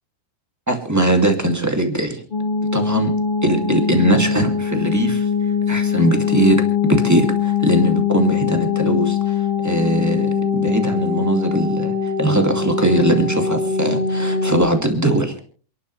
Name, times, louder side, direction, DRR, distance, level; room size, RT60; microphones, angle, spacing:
voice 1, 0.7-2.2 2.7-3.1 3.4-5.3 5.7-6.6 6.8-15.3, right 1 dB, 5° right, 4 dB, 1.4 m, -20 dB
sound 1, 2.3-14.6, left 6 dB, 60° left, 0.5 m, -21 dB
28.5 x 11.5 x 3.3 m, 0.41 s
omnidirectional pair, 4.1 m